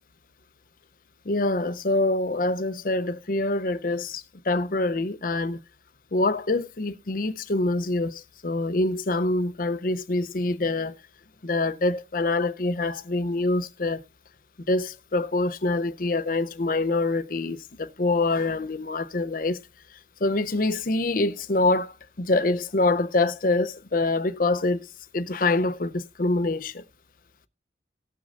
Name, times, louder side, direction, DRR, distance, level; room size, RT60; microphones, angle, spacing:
voice 1, 1.3-5.6 6.1-11.0 11.4-14.0 14.7-19.6 20.2-24.9 25.1-26.8, left 2 dB, 50° left, 0.7 m, -25 dB
18.5 x 6.3 x 2.5 m
head